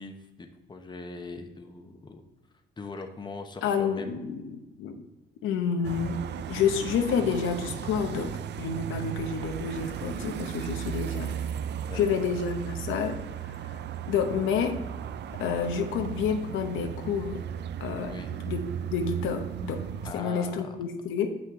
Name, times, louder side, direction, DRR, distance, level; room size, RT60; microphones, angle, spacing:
voice 1, 0.0-2.2 2.8-4.2 10.7-11.0 11.8-12.0 18.1-18.4 20.0-20.8, left 3 dB, 20° left, 5 dB, 0.9 m, -41 dB
voice 2, 3.6-5.0 5.4-11.4 11.9-13.2 14.1-14.8 15.4-17.5 17.8-19.9 20.1-21.3, left 6 dB, 90° left, 5 dB, 0.9 m, -29 dB
sound 1, 5.8-20.1, right 9 dB, 60° right, 0.4 m, -36 dB
7.6 x 6.1 x 3.7 m, 1.1 s
cardioid pair, 90°, 20 cm